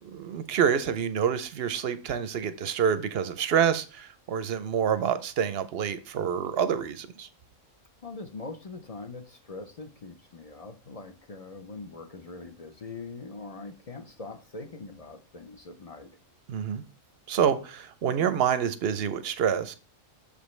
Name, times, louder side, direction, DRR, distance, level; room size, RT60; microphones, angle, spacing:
voice 1, 0.0-7.3 16.5-16.8 17.3-19.8, right 8 dB, 60° right, 0.7 m, -27 dB
voice 2, 8.0-16.1, left 3 dB, 40° left, 0.5 m, -42 dB
6.7 x 5.1 x 3.1 m
omnidirectional pair, 1.3 m